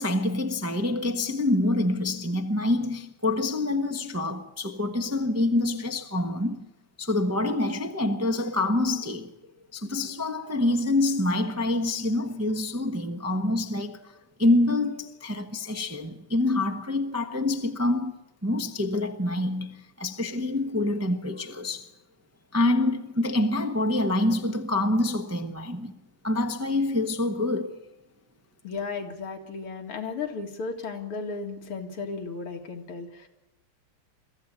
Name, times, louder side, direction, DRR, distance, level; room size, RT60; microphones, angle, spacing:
voice 1, 0.0-6.7 7.0-9.3 9.7-18.1 18.4-21.9 22.5-26.0 26.2-27.8, left 2 dB, 15° right, 0.5 m, -26 dB
voice 2, 28.6-33.3, left 4 dB, 85° left, 3.1 m, -34 dB
23.5 x 14.5 x 8.4 m
omnidirectional pair, 2.4 m